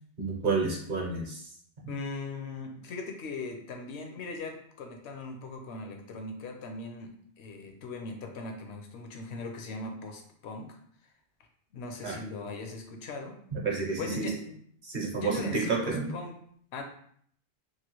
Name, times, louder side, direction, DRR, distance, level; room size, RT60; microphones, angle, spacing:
voice 1, 0.2-1.4 12.0-12.2 13.5-14.3 14.8-16.1, right 4 dB, 50° right, -2 dB, 0.8 m, -30 dB
voice 2, 1.9-10.8 11.7-13.4 14.0-14.6 15.1-16.4 16.7-16.8, left 3 dB, 75° left, 3 dB, 0.8 m, -39 dB
3.0 x 2.3 x 2.9 m, 0.63 s
omnidirectional pair, 1.1 m